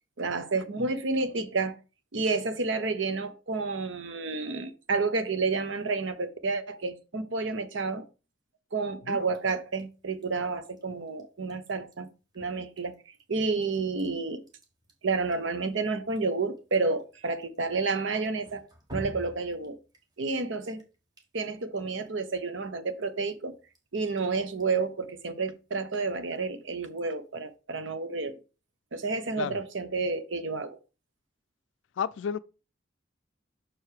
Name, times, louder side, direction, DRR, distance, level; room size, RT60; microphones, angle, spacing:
voice 1, 0.2-1.8 2.1-8.1 8.7-12.1 12.3-14.4 15.0-19.8 20.2-20.8 21.3-23.6 23.9-28.4 28.9-30.8, right 3 dB, 75° right, 0.9 m, -30 dB
Drip, 9.3-27.6, equal, 20° right, 1.2 m, -53 dB
voice 2, 32.0-32.4, left 7 dB, 75° left, 0.3 m, -31 dB
6.2 x 4.7 x 4.9 m
head